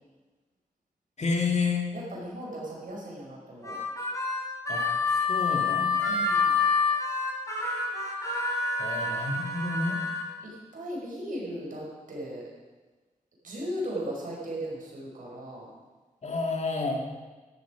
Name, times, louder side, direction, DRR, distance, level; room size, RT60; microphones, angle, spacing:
voice 1, 1.2-1.9 4.7-6.2 8.8-10.0 16.2-17.1, left 4 dB, 55° left, 2 dB, 2.5 m, -30 dB
voice 2, 1.9-3.8 6.1-6.6 10.4-12.4 13.4-15.7, equal, 75° right, -3 dB, 5.1 m, -37 dB
Harmonica, 3.6-10.2, left 4 dB, 25° left, 4.4 m, -27 dB
13.5 x 11.5 x 5.1 m, 1.3 s
cardioid pair, 50°, 14 cm